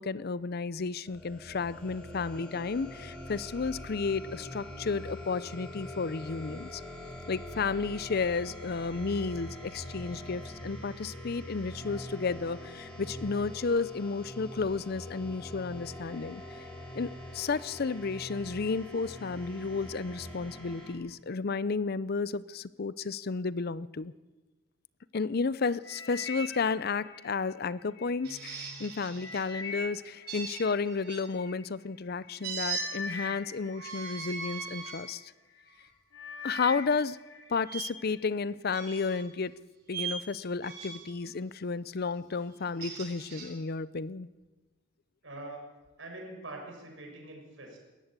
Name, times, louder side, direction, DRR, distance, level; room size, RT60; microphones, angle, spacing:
voice 1, 0.0-6.8 7.3-16.4 16.9-24.1 25.1-35.3 36.4-37.2 37.5-39.6 39.9-44.3, left 4 dB, 50° left, 18 dB, 0.6 m, -32 dB
sound 1, 1.0-20.9, left 1 dB, 10° left, 5.9 m, -44 dB
sound 2, 25.8-28.2 28.7-31.5 32.2-32.4 32.6-35.0 35.5-35.8 36.1-37.6 38.0-38.5 39.1-39.2, left 3 dB, 70° left, 3.7 m, -42 dB
sound 3, 28.2-29.4 30.3-31.2 32.4-32.9 33.7-35.0 35.7-35.9 37.7-37.8 38.7-39.2 39.9-40.2 40.6-41.1 42.5-43.5, right 5 dB, 55° right, 6.7 m, -39 dB
voice 2, 45.2-45.6 46.0-47.8, right 2 dB, 70° right, 1 dB, 6.6 m, -44 dB
19.5 x 14.5 x 9.0 m, 1.2 s
head